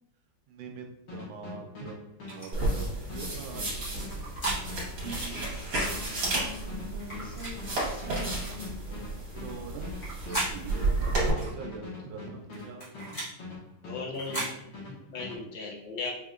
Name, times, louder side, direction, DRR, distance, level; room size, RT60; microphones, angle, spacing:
voice 1, 0.5-4.3 9.3-13.1, right 5 dB, 85° right, 3 dB, 1.4 m, -44 dB
sound 1, 1.1-14.0 14.3-15.4, left 3 dB, 85° left, 2.1 m, -42 dB
sound 2, 2.3-2.5 3.8-4.6 5.7-5.9 7.0-7.6 8.4-8.6 9.8-10.5 11.4-11.6 12.5-13.3 14.1-14.5, right 2 dB, 30° left, 1.2 m, -36 dB
sound 3, 2.5-11.3, right 2 dB, 50° right, 1.6 m, -32 dB
voice 2, 5.0-8.7, equal, 30° right, -12 dB, 1.6 m, -44 dB
voice 3, 13.8-16.1, left 4 dB, 70° left, -3 dB, 0.4 m, -37 dB
4.9 x 2.8 x 2.4 m, 0.85 s
omnidirectional pair, 2.1 m